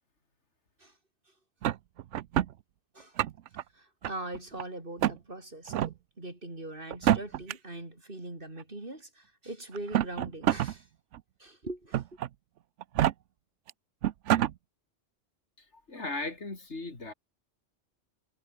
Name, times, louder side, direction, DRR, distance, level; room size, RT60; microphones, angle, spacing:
sound 1, 1.6-2.5 3.0-3.6 4.0-4.6 5.0-5.2 5.7-5.9 6.9-7.5 8.6-8.7 9.7-10.7 11.1-11.2 11.9-12.3 12.8-13.1 13.7-13.8 14.0-14.5, right 12 dB, 90° right, 1.0 m, -27 dB
voice 1, 3.7-10.9 11.4-12.0, right 2 dB, 45° right, 4.5 m, -42 dB
voice 2, 15.7-17.1, left 3 dB, 70° left, 3.7 m, -37 dB
omnidirectional pair, 1.2 m